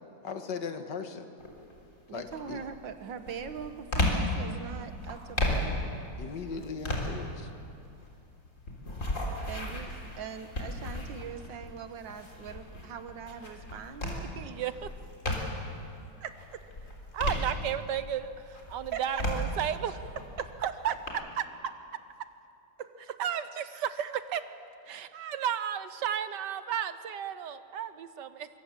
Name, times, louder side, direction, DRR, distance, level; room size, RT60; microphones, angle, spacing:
voice 1, 0.2-1.4 2.1-2.6 6.2-7.5, left 5 dB, 70° left, 7 dB, 2.0 m, -38 dB
sound 1, 1.4-1.8 2.3-15.8 16.2-18.1 18.5-21.1, left 1 dB, 45° left, 3.9 m, -35 dB
voice 2, 2.1-5.8 9.5-14.3 16.2-16.6 18.9-19.4 20.4-20.5 22.8-23.2 23.7-23.8, right 7 dB, 90° right, 9 dB, 2.0 m, -41 dB
voice 3, 14.4-14.9 17.1-20.2 20.6-20.9 21.4-21.5 23.2-24.4 24.8-28.5, right 9 dB, 70° right, 12 dB, 1.5 m, -33 dB
24.5 x 23.0 x 7.4 m, 2.6 s
omnidirectional pair, 2.0 m